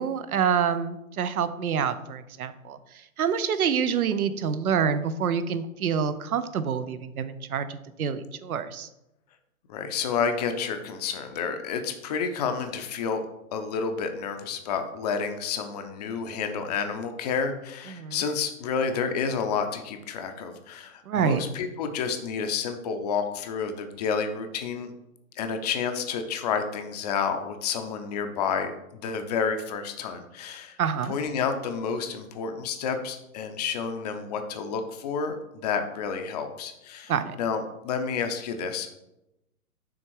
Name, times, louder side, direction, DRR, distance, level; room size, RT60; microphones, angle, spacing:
voice 1, 0.0-2.8 3.2-8.9 17.9-18.2 21.1-21.4 30.8-31.1 37.1-37.4, right 7 dB, 80° right, 12 dB, 0.7 m, -27 dB
voice 2, 9.7-13.2 13.5-24.9 25.3-28.7 29.0-30.8 31.1-37.1 37.4-39.0, left 6 dB, 30° left, 7 dB, 0.5 m, -30 dB
6.2 x 3.6 x 4.6 m, 0.89 s
hypercardioid pair, 135°, 43 cm